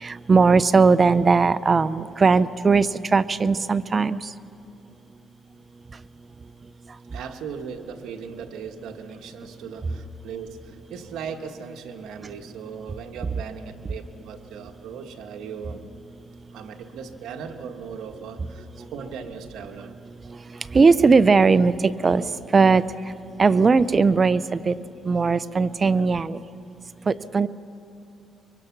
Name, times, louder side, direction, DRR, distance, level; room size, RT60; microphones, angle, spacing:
voice 1, 0.0-4.2 20.7-22.2 22.5-22.8 23.4-24.7 25.1-26.4 27.1-27.5, right 4 dB, 35° right, 15 dB, 0.6 m, -18 dB
voice 2, 7.1-15.9 16.5-20.0, right 6 dB, 85° right, 4 dB, 1.4 m, -38 dB
24.5 x 23.5 x 6.0 m, 2.6 s
cardioid pair, 90°, 0 cm